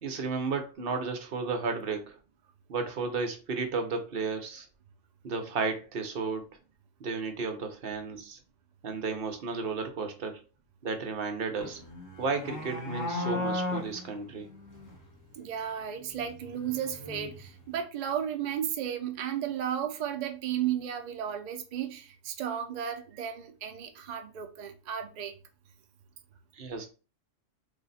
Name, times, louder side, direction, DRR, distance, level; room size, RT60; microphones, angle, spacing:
voice 1, 0.0-2.2 2.7-4.7 5.2-6.5 7.0-8.4 8.8-10.4 10.8-11.8 12.2-14.5 26.5-26.9, right 4 dB, 55° right, 5 dB, 0.8 m, -33 dB
sound 1, 11.6-15.1 16.1-17.7, left 2 dB, 15° left, 0.8 m, -36 dB
voice 2, 15.4-25.3, right 9 dB, 70° right, 5 dB, 0.4 m, -34 dB
3.2 x 2.0 x 3.9 m, 0.33 s
omnidirectional pair, 1.3 m